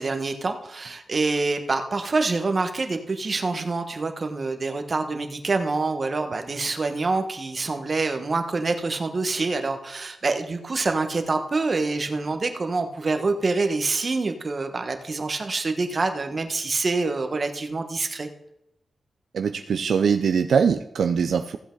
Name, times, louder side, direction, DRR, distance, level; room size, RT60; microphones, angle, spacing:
voice 1, 0.0-18.3, right 3 dB, 35° right, 6 dB, 1.3 m, -26 dB
voice 2, 19.3-21.6, right 6 dB, 75° right, 8 dB, 0.5 m, -22 dB
15.5 x 8.0 x 3.9 m, 0.83 s
wide cardioid pair, 130°, 0 cm